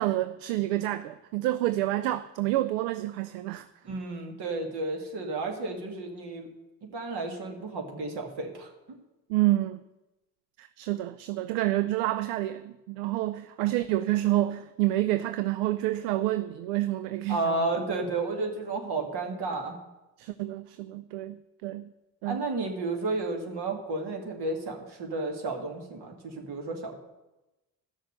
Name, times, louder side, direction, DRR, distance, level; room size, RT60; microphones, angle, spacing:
voice 1, 0.0-3.7 9.3-9.8 10.6-17.7 20.2-21.9 22.2-22.4, right 15 dB, 75° right, 0.6 m, -28 dB
voice 2, 3.8-6.5 6.9-8.7 17.3-19.8 22.3-27.0, right 3 dB, 50° right, 2.5 m, -32 dB
13.0 x 6.4 x 6.8 m
hypercardioid pair, 50°, 50 cm